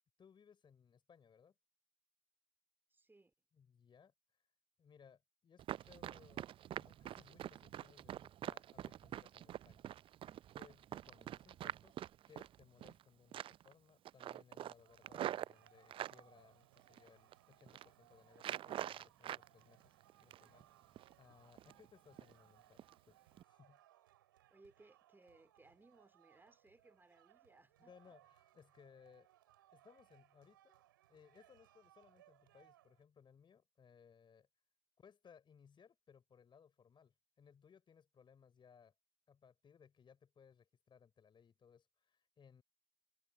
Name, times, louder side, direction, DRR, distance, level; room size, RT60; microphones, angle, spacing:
voice 1, 0.2-1.6 3.5-4.1 4.8-9.8 10.5-12.0 12.3-19.9 20.2-22.8 23.1-23.2 23.4-23.8 27.8-29.3 29.7-30.8 31.1-34.5 35.0-38.9 39.3-42.6, left 7 dB, 45° left, 3.9 m, -65 dB
voice 2, 2.9-3.3 24.5-27.9, right 2 dB, 20° right, 2.6 m, -66 dB
Run, 5.6-13.0 13.3-13.7 14.0-16.2 16.8-17.3 17.6-17.9 18.4-19.5 19.8-20.6 21.0-21.1 21.5-21.9 22.2-22.3 22.8-22.9 23.3-23.4, right 11 dB, 55° right, 0.4 m, -45 dB
sound 1, 14.8-33.0, right 13 dB, 90° right, 3.9 m, -69 dB
hypercardioid pair, 50°, 11 cm